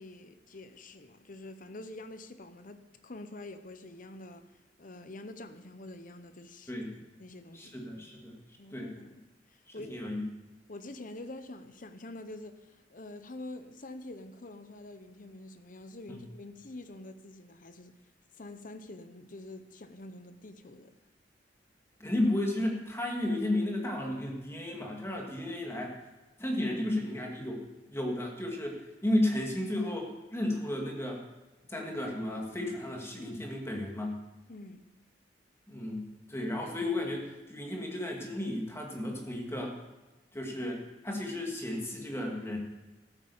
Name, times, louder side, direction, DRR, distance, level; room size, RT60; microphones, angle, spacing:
voice 1, 0.0-4.5 4.8-6.7 7.2-7.7 8.6-10.0 10.7-18.0 18.4-21.0 34.5-34.9, left 2 dB, 50° left, 0.9 m, -46 dB
voice 2, 7.5-8.4 8.7-8.9 9.7-10.2 16.1-16.2 22.0-26.0 26.4-27.6 27.9-31.2 31.7-34.2 35.7-39.7 40.3-42.6, left 1 dB, 15° left, 2.3 m, -33 dB
14.0 x 8.7 x 7.1 m
head